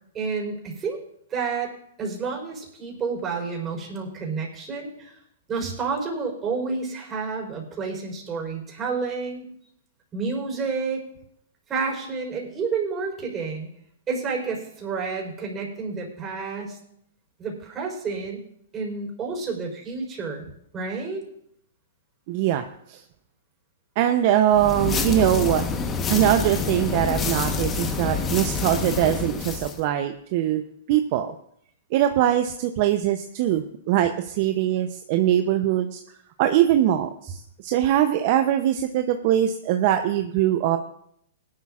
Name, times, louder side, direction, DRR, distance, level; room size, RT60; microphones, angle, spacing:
voice 1, 0.1-1.0 1.3-1.7 2.0-5.1 5.5-9.5 10.1-11.0 11.7-13.7 14.1-16.8 17.4-18.4 18.7-21.2, right 4 dB, 25° right, 0 dB, 4.2 m, -30 dB
voice 2, 22.3-23.0 24.0-25.7 26.1-30.6 30.9-31.3 31.9-36.0 36.4-40.8, right 11 dB, 50° right, 7 dB, 0.7 m, -22 dB
sound 1, 24.5-29.8, left 4 dB, 20° left, 1.1 m, -27 dB
18.5 x 11.5 x 2.5 m, 0.71 s
hypercardioid pair, 125°, 0 cm